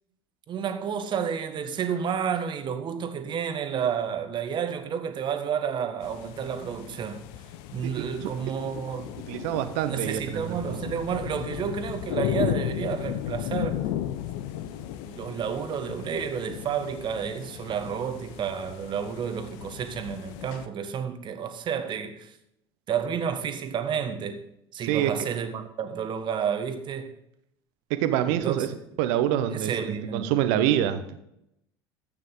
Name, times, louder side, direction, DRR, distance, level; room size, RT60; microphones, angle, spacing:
voice 1, 0.5-7.2 7.7-9.2 9.8-13.9 14.7-22.3 22.9-24.4 24.7-27.2 28.2-28.7 29.5-30.3, right 7 dB, 35° right, 1.5 m, -31 dB
sound 1, 6.0-20.7, left 12 dB, 55° left, 0.8 m, -35 dB
voice 2, 7.8-8.3 9.3-10.8 24.9-25.1 27.9-28.7 29.0-29.7 30.1-31.2, right 11 dB, 55° right, 1.1 m, -26 dB
13.5 x 8.9 x 4.0 m
figure-of-eight pair, 70°, 14 cm